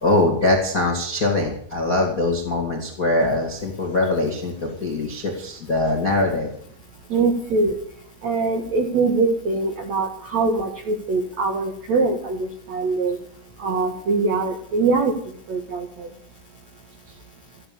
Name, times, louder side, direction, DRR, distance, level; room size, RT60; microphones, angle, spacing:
voice 1, 0.0-6.5, left 2 dB, 45° left, 0 dB, 1.1 m, -22 dB
voice 2, 7.1-7.7 8.2-13.2 13.6-15.1 15.5-16.1, right 3 dB, 70° right, 3 dB, 1.7 m, -22 dB
14.0 x 11.0 x 6.9 m, 0.64 s
omnidirectional pair, 5.7 m